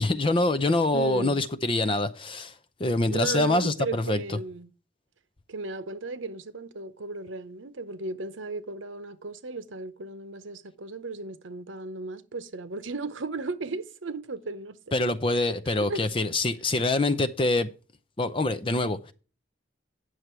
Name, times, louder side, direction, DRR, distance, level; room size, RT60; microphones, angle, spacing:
voice 1, 0.0-2.5 2.8-4.4 14.9-17.7 18.2-19.1, left 2 dB, 25° left, 0.6 m, -25 dB
voice 2, 0.9-1.4 3.1-4.7 5.5-15.0 15.3-16.0, right 3 dB, 85° right, 0.9 m, -35 dB
9.7 x 6.3 x 4.5 m
head